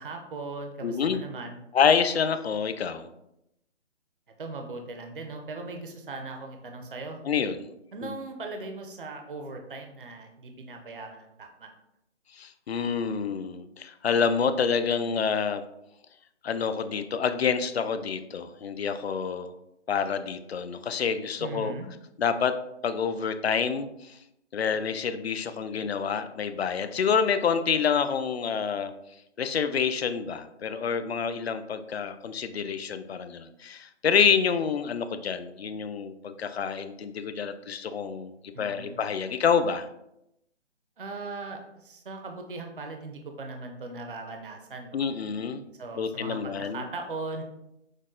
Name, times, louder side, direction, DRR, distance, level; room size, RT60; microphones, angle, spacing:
voice 1, 0.0-1.6 4.4-7.2 7.9-11.7 21.4-21.9 38.5-39.0 41.0-45.1 45.8-47.4, right 3 dB, 50° right, 4 dB, 0.6 m, -39 dB
voice 2, 0.8-1.2 1.7-3.1 7.2-7.7 8.0-8.1 12.3-15.6 16.4-19.5 19.9-21.7 22.2-22.6 22.8-24.2 24.5-28.9 29.4-39.9 44.9-45.6 45.9-46.8, left 6 dB, 60° left, 10 dB, 0.5 m, -27 dB
6.3 x 2.2 x 3.7 m, 0.82 s
hypercardioid pair, 180°, 35 cm